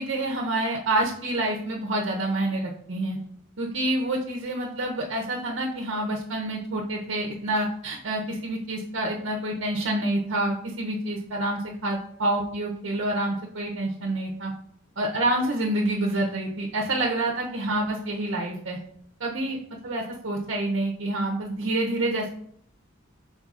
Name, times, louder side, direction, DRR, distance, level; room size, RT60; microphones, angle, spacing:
voice 1, 0.0-3.2 3.6-14.5 15.0-18.8 19.2-22.3, right 1 dB, 60° right, 0 dB, 0.6 m, -27 dB
5.4 x 3.9 x 2.4 m, 0.66 s
head